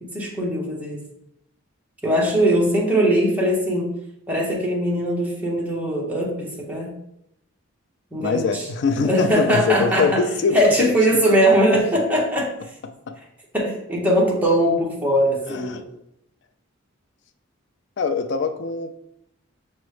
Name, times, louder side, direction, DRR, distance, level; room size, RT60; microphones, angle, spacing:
voice 1, 0.0-1.0 2.0-3.9 4.3-6.9 8.1-8.6 9.0-10.2 10.5-12.5 13.5-15.8, equal, 5° right, 0.8 m, -20 dB
voice 2, 8.2-10.9 13.1-13.2 15.5-15.8 18.0-19.0, left 4 dB, 50° left, 0.3 m, -23 dB
6.0 x 2.1 x 3.1 m
head